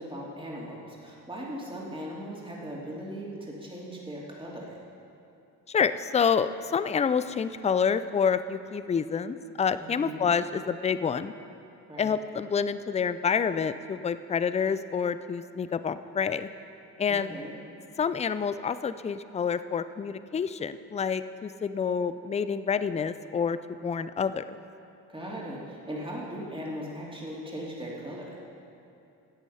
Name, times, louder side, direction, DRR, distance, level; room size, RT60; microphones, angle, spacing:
voice 1, 0.0-4.8 9.8-10.3 11.9-12.1 17.1-17.6 25.1-28.4, equal, 15° right, -4 dB, 2.8 m, -38 dB
voice 2, 5.7-11.3 12.0-16.5 17.0-17.3 18.0-24.6, left 6 dB, 20° left, 13 dB, 0.3 m, -28 dB
12.5 x 8.1 x 5.6 m, 2.6 s
supercardioid pair, 70°, 40 cm